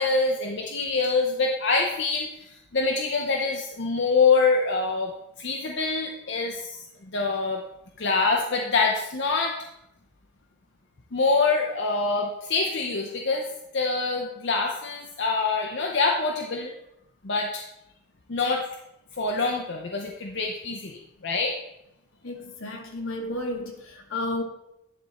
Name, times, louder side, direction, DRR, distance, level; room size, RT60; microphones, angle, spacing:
voice 1, 0.0-5.1 5.4-6.8 7.1-7.6 8.0-9.5 11.1-13.5 13.7-16.7 17.2-17.6 18.3-18.7 19.2-21.6, left 4 dB, 55° left, 0 dB, 0.6 m, -25 dB
voice 2, 22.2-24.4, left 2 dB, 75° left, 3 dB, 1.3 m, -32 dB
10.5 x 3.6 x 4.1 m, 0.85 s
head